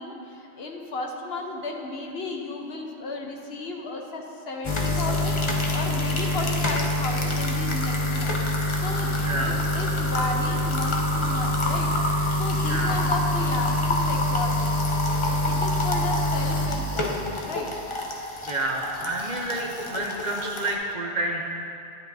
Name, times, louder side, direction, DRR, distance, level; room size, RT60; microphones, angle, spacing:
voice 1, 0.0-8.3 8.8-11.9 12.4-14.7 15.1-17.8, left 2 dB, 65° left, 1 dB, 1.1 m, -34 dB
sound 1, 4.6-20.7, left 1 dB, 35° left, 0.6 m, -26 dB
voice 2, 9.2-9.6 12.7-13.0 18.5-21.4, right 2 dB, 45° right, 0 dB, 0.7 m, -29 dB
11.0 x 9.7 x 2.7 m, 2.7 s
omnidirectional pair, 1.1 m